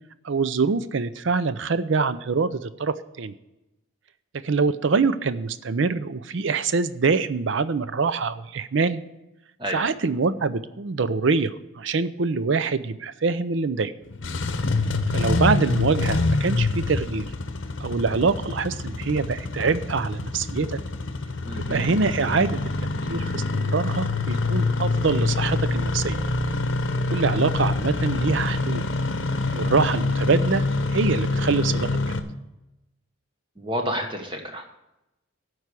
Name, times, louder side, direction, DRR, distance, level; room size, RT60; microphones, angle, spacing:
voice 1, 0.2-3.3 4.4-9.0 9.7-13.9 15.1-17.3 17.8-20.7 21.6-22.6 23.1-26.2 27.1-28.8 29.5-30.6 30.9-31.9, right 4 dB, 60° right, 14 dB, 0.5 m, -24 dB
Engine starting, 14.1-32.2, left 3 dB, 60° left, 0.8 m, -26 dB
voice 2, 21.4-21.9 33.6-34.6, equal, 25° right, 3 dB, 1.1 m, -30 dB
12.0 x 4.8 x 8.2 m, 0.94 s
head